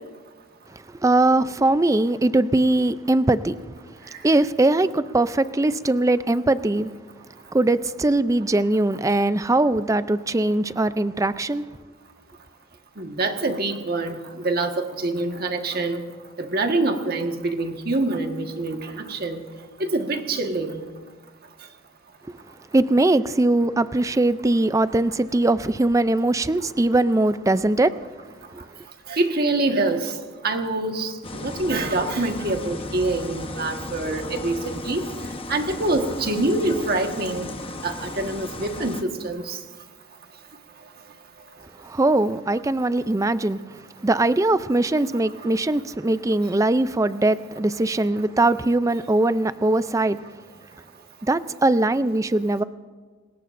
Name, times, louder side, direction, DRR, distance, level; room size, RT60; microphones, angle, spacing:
voice 1, 0.7-3.6 4.2-6.9 7.5-11.6 22.3-22.4 22.7-27.9 28.5-28.6 41.8-43.6 44.0-50.2 51.3-52.6, right 2 dB, 15° right, 0.4 m, -21 dB
voice 2, 13.0-16.0 16.4-19.4 19.8-20.8 29.1-30.2 30.4-35.0 35.5-37.5 37.8-39.6, right 2 dB, 45° right, 1.5 m, -25 dB
sound 1, 31.2-39.0, left 2 dB, 25° left, 0.9 m, -35 dB
26.5 x 20.5 x 2.6 m
head